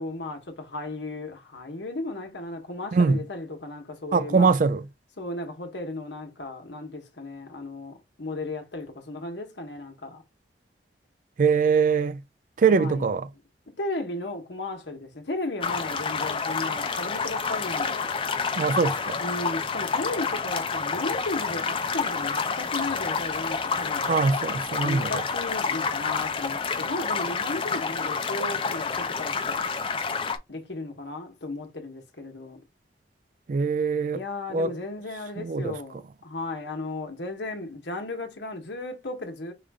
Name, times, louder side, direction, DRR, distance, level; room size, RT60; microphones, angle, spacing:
voice 1, 0.0-4.5 5.2-10.2 12.7-13.0 13.8-18.1 19.2-24.1 24.8-29.7 30.5-32.6 34.1-39.5, left 2 dB, 80° left, 1.2 m, -35 dB
voice 2, 2.9-3.2 4.1-4.9 11.4-12.2 12.6-13.3 18.6-19.2 24.1-25.2 33.5-34.2 34.5-34.7 35.4-35.8, right 5 dB, 45° right, 0.3 m, -22 dB
sound 1, 15.6-30.4, left 5 dB, 30° left, 0.5 m, -29 dB
4.9 x 2.5 x 3.5 m
head